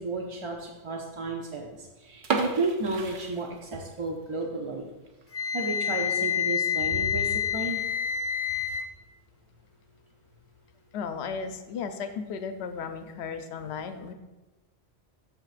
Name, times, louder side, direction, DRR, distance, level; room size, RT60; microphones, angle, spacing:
voice 1, 0.0-4.9 5.5-7.8, right 2 dB, 40° right, 0 dB, 0.5 m, -32 dB
sound 1, 2.2-4.1 4.4-4.5 5.0-5.2 5.6-5.7 6.0-6.1 6.8-7.2, right 4 dB, 55° right, 0.8 m, -32 dB
Wind instrument woodwind instrument, 5.3-8.8, left 8 dB, 15° left, 0.6 m, -28 dB
voice 2, 10.9-14.1, left 6 dB, 85° left, 8 dB, 0.9 m, -35 dB
12.5 x 5.0 x 2.4 m, 1.1 s
omnidirectional pair, 1.1 m